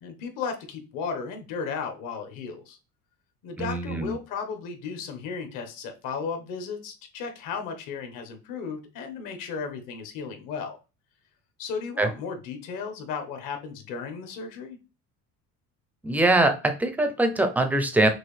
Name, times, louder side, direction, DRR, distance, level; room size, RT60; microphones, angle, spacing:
voice 1, 0.0-2.8 3.4-10.8 11.6-14.8, left 5 dB, 65° left, 6 dB, 1.2 m, -35 dB
voice 2, 3.6-4.2 12.0-12.1 16.0-18.1, right 2 dB, 5° right, 7 dB, 0.4 m, -23 dB
6.0 x 2.6 x 3.2 m, 0.31 s
cardioid pair, 165°, 35 cm